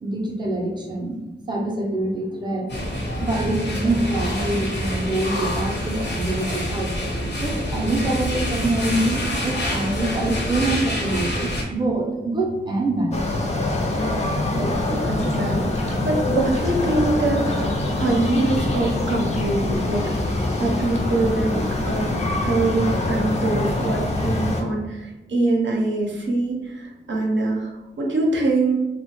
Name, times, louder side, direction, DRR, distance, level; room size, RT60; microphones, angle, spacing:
voice 1, 0.0-1.2 1.5-7.0 7.4-13.4 20.1-20.2, right 2 dB, 25° right, -1 dB, 0.5 m, -25 dB
sound 1, 2.7-11.6, equal, 65° left, 0.7 m, -26 dB
sound 2, 13.1-24.6, left 2 dB, 35° left, 0.4 m, -24 dB
voice 2, 13.9-17.7 18.0-20.3 20.6-22.1 22.4-28.8, right 2 dB, 85° right, -1 dB, 0.6 m, -24 dB
2.8 x 2.1 x 2.9 m, 1.1 s
wide cardioid pair, 110°, 19 cm